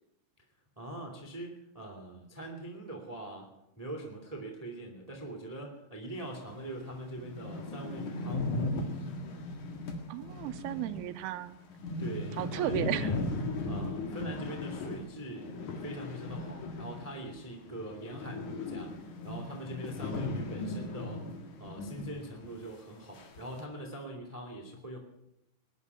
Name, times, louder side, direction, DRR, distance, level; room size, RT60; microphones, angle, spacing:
voice 1, 0.8-3.5 3.8-8.5 12.0-13.2 13.7-15.6 15.8-18.9 19.2-21.2 21.6-25.0, right 1 dB, 10° right, 2 dB, 1.9 m, -42 dB
sound 1, 6.5-6.6 6.9-7.0 7.2-17.4 17.7-22.2 22.4-22.5 23.2-23.6, left 2 dB, 55° left, 3.0 m, -37 dB
voice 2, 10.1-11.6 12.4-13.1, right 13 dB, 80° right, 12 dB, 2.6 m, -34 dB
20.5 x 11.0 x 6.1 m, 0.86 s
omnidirectional pair, 4.5 m